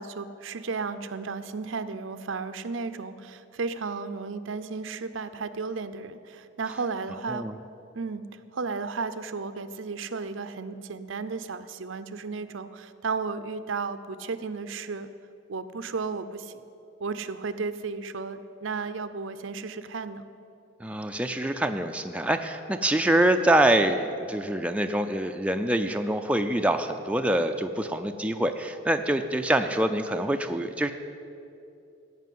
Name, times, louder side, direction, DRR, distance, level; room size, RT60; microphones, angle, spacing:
voice 1, 0.0-7.5 7.9-8.2 8.5-15.1 15.5-16.6 17.0-20.2, right 4 dB, 70° right, 11 dB, 0.6 m, -34 dB
voice 2, 20.8-30.9, right 1 dB, 5° right, 5 dB, 0.4 m, -25 dB
15.0 x 6.0 x 9.3 m, 2.6 s
head